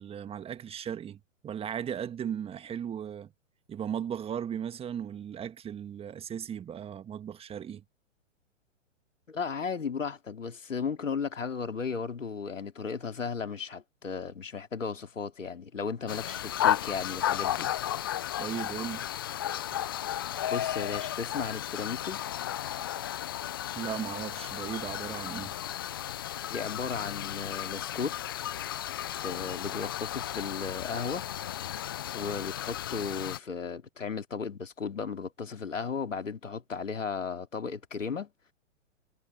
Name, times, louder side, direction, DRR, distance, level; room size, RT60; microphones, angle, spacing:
voice 1, 0.0-3.3 3.7-7.8 18.4-19.1 19.7-19.8 23.8-25.5, right 9 dB, 15° right, 1.8 m, -37 dB
voice 2, 9.3-17.7 20.5-22.2 26.5-28.4 29.2-31.2 32.1-38.3, left 5 dB, 80° left, 2.9 m, -35 dB
sound 1, 16.1-33.4, left 12 dB, 20° left, 0.3 m, -34 dB
figure-of-eight pair, 120°, 38 cm